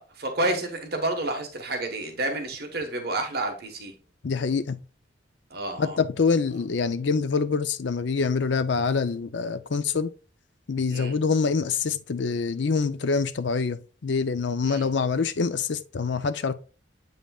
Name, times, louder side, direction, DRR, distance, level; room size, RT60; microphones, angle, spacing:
voice 1, 0.0-3.9 5.5-6.0 10.9-11.2 14.6-14.9, right 2 dB, 55° right, 1.3 m, -30 dB
voice 2, 4.2-4.8 5.8-10.1 10.7-16.5, left 5 dB, 70° left, 0.5 m, -25 dB
7.9 x 5.4 x 2.4 m
head